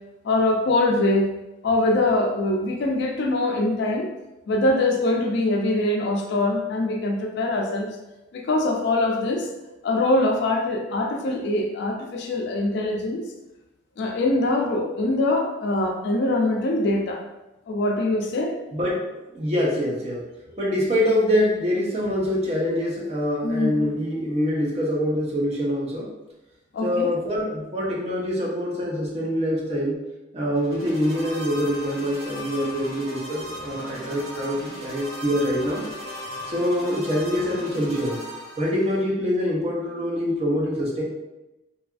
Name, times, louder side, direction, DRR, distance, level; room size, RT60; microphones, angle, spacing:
voice 1, 0.2-1.3 1.6-4.1 4.5-7.9 8.3-9.5 9.8-13.2 14.0-17.2 17.7-18.5 23.4-23.9 26.7-27.1, left 2 dB, 60° left, 2 dB, 0.3 m, -23 dB
voice 2, 18.7-20.2 20.6-26.1 26.8-30.0 30.3-35.9 36.5-38.2 38.6-41.0, equal, 30° right, -4 dB, 0.6 m, -25 dB
sound 1, 30.5-39.0, equal, 85° right, 0.9 m, -37 dB
2.7 x 2.4 x 2.3 m, 0.99 s
head